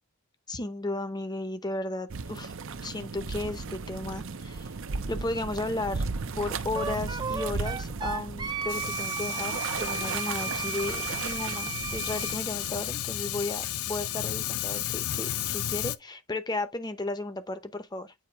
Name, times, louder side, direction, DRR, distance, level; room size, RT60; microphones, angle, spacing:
voice 1, 0.5-2.5 2.8-4.7 5.1-6.1 6.4-18.1, left 2 dB, 20° left, 0.8 m, -34 dB
sound 1, 2.1-12.9, right 4 dB, 65° right, 0.7 m, -36 dB
Wind instrument woodwind instrument, 6.8-12.4, right 6 dB, 20° right, 0.6 m, -34 dB
Fire, 8.7-16.0, left 11 dB, 80° left, 0.5 m, -33 dB
8.7 x 2.9 x 4.5 m
head